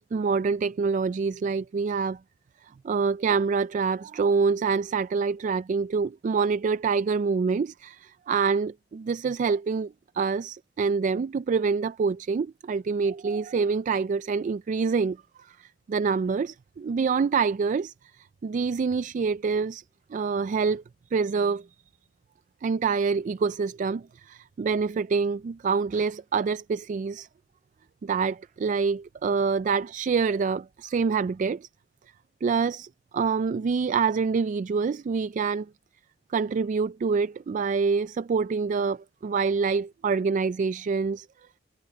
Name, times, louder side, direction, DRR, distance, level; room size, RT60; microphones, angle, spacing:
voice 1, 0.0-2.2 2.6-19.8 20.1-20.8 21.1-21.7 22.6-27.3 28.0-31.7 32.4-35.7 36.3-41.3, right 5 dB, 40° right, 0.3 m, -26 dB
head